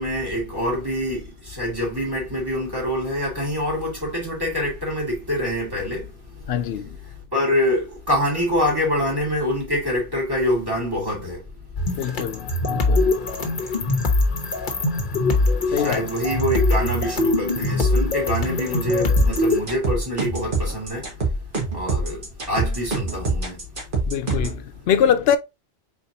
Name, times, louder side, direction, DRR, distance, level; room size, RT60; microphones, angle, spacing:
voice 1, 0.0-6.6 6.9-11.5 11.8-11.9 12.4-12.5 14.6-14.7 15.0-23.7 24.3-24.8, left 1 dB, 20° right, 2.5 m, -26 dB
voice 2, 6.5-6.9 11.9-13.1 15.7-16.1 24.1-25.4, left 8 dB, 70° left, 0.8 m, -23 dB
sound 1, 11.8-19.6, left 2 dB, 50° left, 1.1 m, -22 dB
sound 2, 19.2-24.6, right 3 dB, 50° right, 1.7 m, -25 dB
4.6 x 3.8 x 2.7 m
omnidirectional pair, 1.1 m